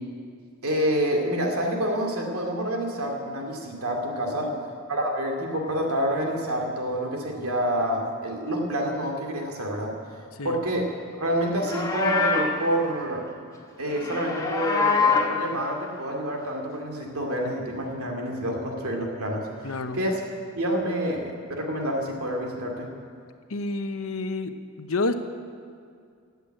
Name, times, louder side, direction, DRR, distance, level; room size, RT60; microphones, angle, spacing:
voice 1, 0.6-4.5 4.9-9.9 10.4-10.9 11.2-13.2 13.8-20.2 20.5-22.9, equal, 80° right, 1 dB, 2.5 m, -28 dB
voice 2, 4.3-4.6 10.3-10.6 19.6-20.0 23.5-25.2, left 2 dB, 70° left, 9 dB, 0.9 m, -30 dB
Livestock farm animals working animals, 11.5-12.6 13.9-15.4, left 4 dB, 15° left, 1.1 m, -24 dB
16.0 x 8.1 x 9.0 m, 2.2 s
head